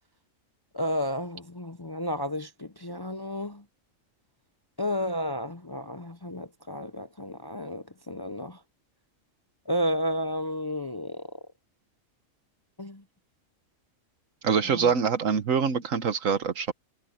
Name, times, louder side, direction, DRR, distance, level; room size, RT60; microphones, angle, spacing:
voice 1, 0.7-3.6 4.8-8.6 9.7-11.3 12.8-13.0 14.6-14.9, equal, 30° left, 0.4 m, -32 dB
voice 2, 14.4-16.7, right 6 dB, 75° right, 1.5 m, -25 dB
omnidirectional pair, 1.4 m